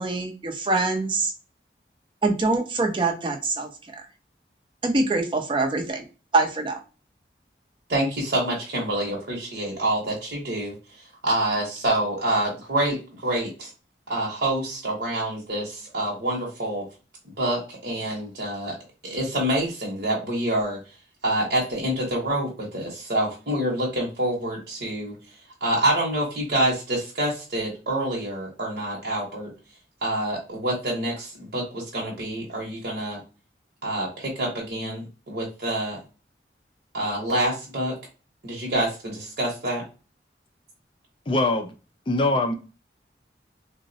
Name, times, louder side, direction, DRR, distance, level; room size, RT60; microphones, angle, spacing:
voice 1, 0.0-1.3 2.2-4.0 4.8-6.0 6.3-6.8, right 3 dB, 30° right, 3 dB, 0.5 m, -24 dB
voice 2, 7.9-10.7 11.2-13.7 14.1-16.8 17.2-18.8 19.0-20.8 21.2-25.1 25.6-29.5 30.0-33.2 33.8-36.0 36.9-37.9 38.4-39.8, right 1 dB, 60° right, -4 dB, 0.8 m, -27 dB
voice 3, 41.3-41.7 42.1-42.6, left 2 dB, 30° left, 6 dB, 0.3 m, -22 dB
3.7 x 2.0 x 2.6 m, 0.33 s
head